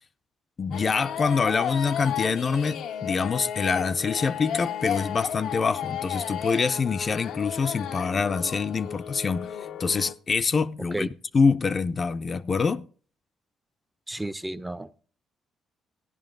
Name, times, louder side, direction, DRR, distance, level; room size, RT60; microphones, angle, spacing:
voice 1, 0.6-9.5 9.8-11.1 11.3-12.9, left 5 dB, 40° left, 0.5 m, -25 dB
sound 1, 0.7-10.1, left 9 dB, 80° left, 0.8 m, -33 dB
voice 2, 14.1-15.0, right 1 dB, 10° right, 0.6 m, -33 dB
15.0 x 10.5 x 3.9 m
cardioid pair, 90°, 0 cm